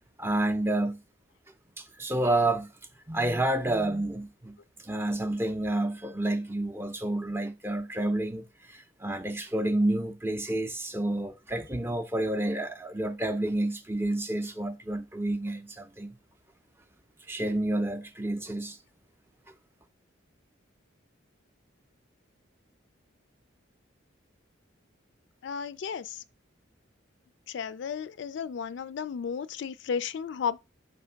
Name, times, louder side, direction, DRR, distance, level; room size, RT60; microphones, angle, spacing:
voice 1, 0.2-1.0 1.8-2.7 3.1-4.6 4.8-16.1 17.3-18.8, right 1 dB, 10° right, 0.5 m, -29 dB
voice 2, 25.4-26.2 27.5-30.6, left 6 dB, 60° left, 0.3 m, -33 dB
5.1 x 3.4 x 5.6 m
head